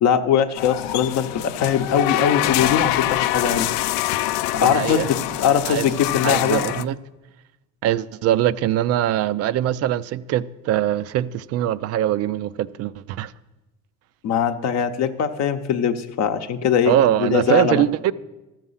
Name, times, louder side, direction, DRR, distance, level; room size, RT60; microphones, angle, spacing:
voice 1, 0.0-3.7 4.5-6.6 14.2-17.8, left 8 dB, 50° left, 0.8 m, -21 dB
sound 1, 0.6-6.8, left 15 dB, 80° left, 0.5 m, -25 dB
voice 2, 4.6-5.1 5.7-5.9 6.2-7.0 7.8-13.3 16.9-18.1, right 12 dB, 45° right, 0.4 m, -22 dB
12.5 x 7.3 x 5.6 m
cardioid pair, 115°, 34 cm